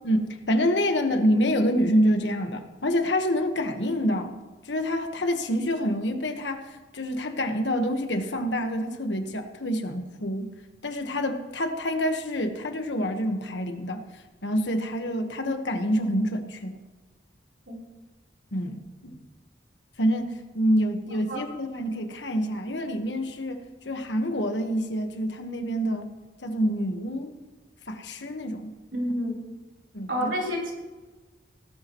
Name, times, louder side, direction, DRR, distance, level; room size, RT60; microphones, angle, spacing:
voice 1, 0.0-4.4 4.6-10.5 10.8-16.8 18.5-19.2 20.0-26.1 26.4-27.3 27.9-28.7 29.9-30.3, equal, 85° left, 6 dB, 1.4 m, -27 dB
voice 2, 28.9-29.4 30.1-30.7, equal, 90° right, -3 dB, 3.9 m, -28 dB
18.0 x 12.5 x 3.1 m, 1.3 s
head